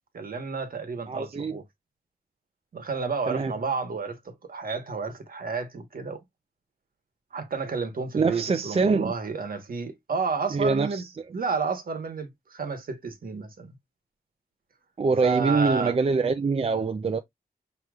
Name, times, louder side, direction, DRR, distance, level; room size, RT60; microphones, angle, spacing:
voice 1, 0.1-1.6 2.7-6.2 7.3-11.0 11.3-13.8 15.2-15.9, right 4 dB, 65° right, 1.2 m, -31 dB
voice 2, 1.1-1.5 3.3-3.5 8.1-9.1 10.5-11.0 15.0-17.2, right 4 dB, 40° right, 0.5 m, -24 dB
6.3 x 3.0 x 2.3 m
wide cardioid pair, 85°, 16 cm